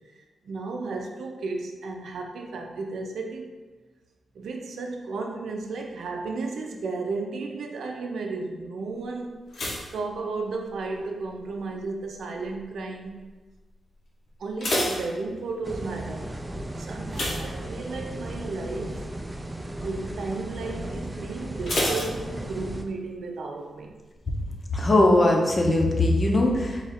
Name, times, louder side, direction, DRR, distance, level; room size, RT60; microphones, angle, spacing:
voice 1, 0.4-3.4 4.3-9.3 9.9-13.3 14.4-16.3 16.8-19.0 19.8-23.9, right 3 dB, 80° right, 2 dB, 0.5 m, -33 dB
sound 1, 9.5-11.0 11.2-11.8 12.4-12.7 13.0-13.1 13.5-13.6 14.3-15.8 17.1-18.2 18.6-18.9 19.2-19.3 21.7-22.9 23.1-23.2, left 1 dB, 65° left, 1.0 m, -30 dB
sound 2, 15.6-22.9, right 1 dB, 15° right, 0.3 m, -35 dB
voice 2, 24.7-26.9, left 1 dB, 30° left, 1 dB, 0.6 m, -20 dB
3.9 x 2.4 x 4.1 m, 1.3 s
wide cardioid pair, 115°, 0 cm